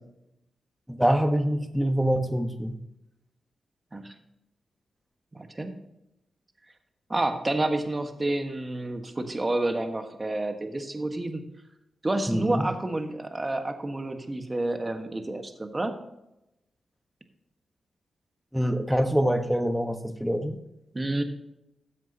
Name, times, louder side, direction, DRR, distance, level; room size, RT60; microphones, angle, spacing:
voice 1, 1.0-2.8 12.3-12.7 18.5-20.6, equal, 5° right, 7 dB, 1.4 m, -25 dB
voice 2, 5.3-5.7 7.1-11.4 12.0-15.9 20.9-21.2, right 2 dB, 30° right, 6 dB, 1.5 m, -29 dB
13.0 x 7.5 x 2.9 m, 0.87 s
supercardioid pair, 40°, 0 cm